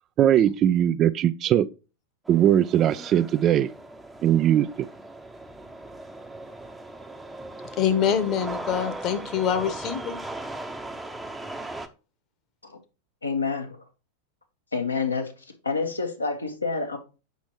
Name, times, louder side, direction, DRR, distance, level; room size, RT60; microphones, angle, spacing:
voice 1, 0.2-1.7 2.3-3.7 4.2-4.9, right 11 dB, 30° right, 0.3 m, -20 dB
sound 1, 2.3-11.9, right 2 dB, 5° right, 0.8 m, -38 dB
voice 2, 7.8-10.2, left 8 dB, 35° left, 1.1 m, -25 dB
voice 3, 13.2-13.8 14.7-15.3 15.6-17.0, left 4 dB, 80° left, 1.4 m, -27 dB
8.1 x 6.1 x 3.0 m
figure-of-eight pair, 90°, 0 cm